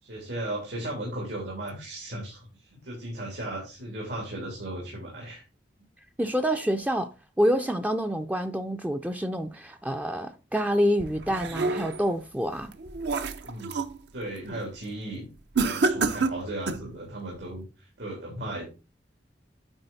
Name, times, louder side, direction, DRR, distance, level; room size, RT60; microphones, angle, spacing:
voice 1, 0.0-5.4 13.4-13.8 14.1-15.3 15.6-18.6, right 1 dB, 85° right, 3.2 m, -36 dB
voice 2, 6.2-7.1 7.4-12.7, equal, 10° right, 0.4 m, -27 dB
sound 1, 11.0-12.1 12.6-14.0 14.4-14.7 15.5-16.9, right 3 dB, 65° right, 0.7 m, -28 dB
8.9 x 4.4 x 4.1 m
head